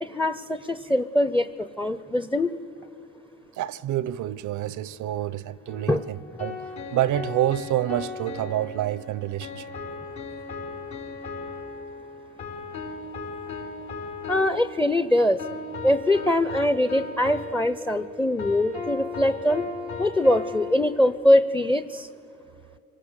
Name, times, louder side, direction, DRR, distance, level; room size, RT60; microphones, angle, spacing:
voice 1, 0.0-2.5 5.9-6.0 14.3-15.4 15.8-19.6 20.0-22.1, left 1 dB, 10° left, 0.6 m, -22 dB
voice 2, 3.6-6.6 6.9-9.7, right 13 dB, 75° right, 0.6 m, -28 dB
sound 1, 5.7-21.2, left 4 dB, 75° left, 4.5 m, -37 dB
26.5 x 19.0 x 8.1 m
cardioid pair, 90°, 30 cm